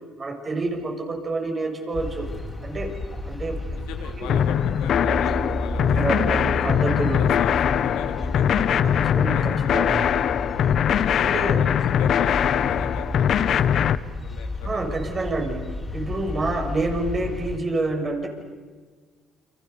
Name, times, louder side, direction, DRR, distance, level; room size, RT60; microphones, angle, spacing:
voice 1, 0.2-2.3 2.6-3.0 3.2-3.6 4.2-4.3 5.8-7.3 8.8-10.2 11.2-11.6 14.6-15.7 15.9-18.3, right 2 dB, 35° right, 2 dB, 6.8 m, -28 dB
sound 1, 1.9-17.6, left 2 dB, 25° left, 4.9 m, -31 dB
voice 2, 3.7-6.6 7.1-7.6 7.8-9.9 10.9-14.8 16.3-16.7, left 7 dB, 90° left, 4 dB, 3.1 m, -39 dB
sound 2, 4.3-14.0, left 9 dB, 60° left, 0.9 m, -22 dB
30.0 x 25.5 x 7.1 m, 1.4 s
cardioid pair, 85°, 0 cm